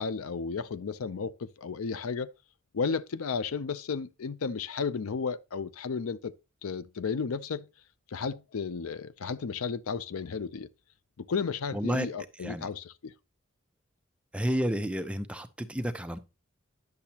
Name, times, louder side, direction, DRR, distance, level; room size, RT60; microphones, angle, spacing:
voice 1, 0.0-2.3 2.7-6.3 6.6-7.7 8.1-10.7 11.2-13.1, left 5 dB, 90° left, 0.5 m, -33 dB
voice 2, 11.7-12.1 12.4-12.7 14.3-16.2, equal, 5° right, 0.5 m, -31 dB
10.5 x 6.9 x 2.8 m
head